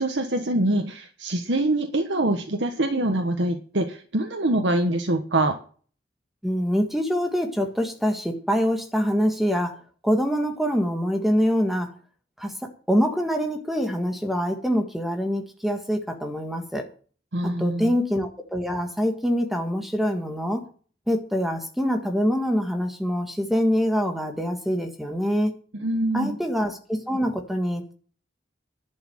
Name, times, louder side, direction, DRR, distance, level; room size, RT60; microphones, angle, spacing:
voice 1, 0.0-5.5 17.3-17.9 25.7-26.4, right 1 dB, 80° right, 5 dB, 1.3 m, -24 dB
voice 2, 6.4-9.7 10.0-11.9 12.4-12.5 12.9-16.8 17.6-20.6 21.1-25.5 26.1-27.9, equal, ahead, 5 dB, 1.7 m, -25 dB
11.0 x 6.3 x 8.9 m, 0.42 s
head